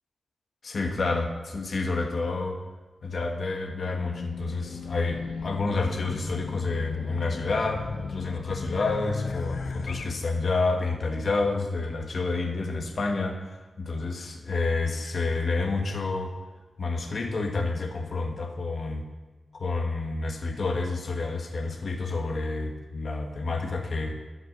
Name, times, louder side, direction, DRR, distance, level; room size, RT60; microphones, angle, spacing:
voice 1, 0.6-2.6 3.0-13.4 13.8-16.3 16.8-19.1 19.5-24.2, left 3 dB, 55° left, 3 dB, 1.3 m, -29 dB
Race car auto racing / Alarm, 3.8-10.1, left 4 dB, 75° left, 0.7 m, -36 dB
13.5 x 5.9 x 5.1 m, 1.2 s
wide cardioid pair, 120°, 0 cm